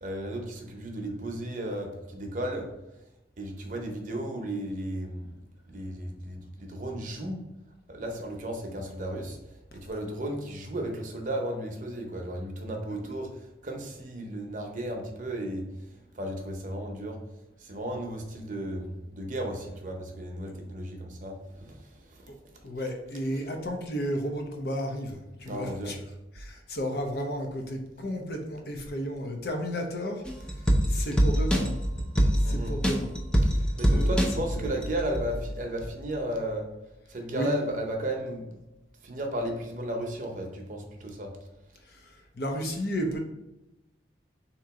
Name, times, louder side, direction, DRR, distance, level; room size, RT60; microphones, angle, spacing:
voice 1, 0.0-2.7 3.4-5.3 5.7-7.4 7.9-15.7 16.1-17.2 17.6-22.3 25.5-25.9 32.4-32.8 33.4-36.7 37.1-38.5 39.0-41.3, right 1 dB, 45° right, 2 dB, 0.7 m, -34 dB
voice 2, 22.6-31.8 32.4-33.1 33.8-34.8 37.3-37.7 41.9-43.2, equal, 60° left, 3 dB, 0.7 m, -33 dB
sound 1, 30.3-35.4 35.8-35.9, equal, 5° left, 0.4 m, -25 dB
3.8 x 2.9 x 4.7 m, 0.94 s
head